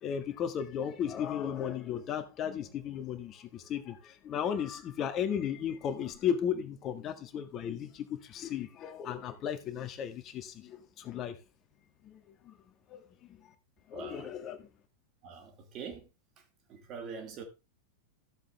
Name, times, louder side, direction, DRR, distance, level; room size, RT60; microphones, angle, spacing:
voice 1, 0.0-11.4 12.0-12.6 12.9-13.5 13.9-14.7, left 8 dB, 30° left, 1.7 m, -35 dB
voice 2, 13.9-14.3 15.2-16.1 16.7-17.4, right 6 dB, 35° right, 2.7 m, -43 dB
14.0 x 7.6 x 3.4 m
figure-of-eight pair, 90°, 0 cm